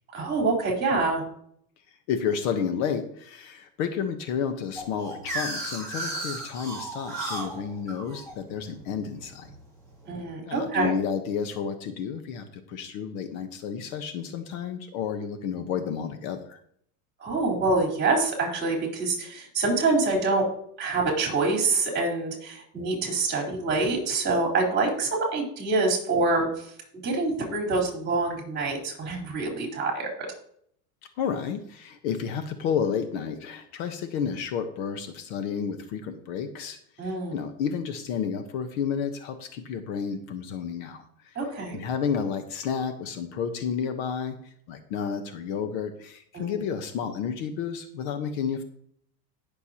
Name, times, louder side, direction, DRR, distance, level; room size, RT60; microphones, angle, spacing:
voice 1, 0.1-1.2 10.1-10.9 17.2-20.5 20.8-26.7 27.0-30.1 37.0-37.4 41.4-41.8 46.3-46.5, right 3 dB, 20° right, 0 dB, 4.1 m, -26 dB
voice 2, 2.1-9.5 10.5-16.6 31.2-41.4 41.7-48.6, left 7 dB, 55° left, 8 dB, 1.2 m, -31 dB
sound 1, 4.8-9.6, right 2 dB, 5° left, 3.4 m, -35 dB
18.0 x 6.9 x 2.9 m, 0.66 s
supercardioid pair, 145°, 48 cm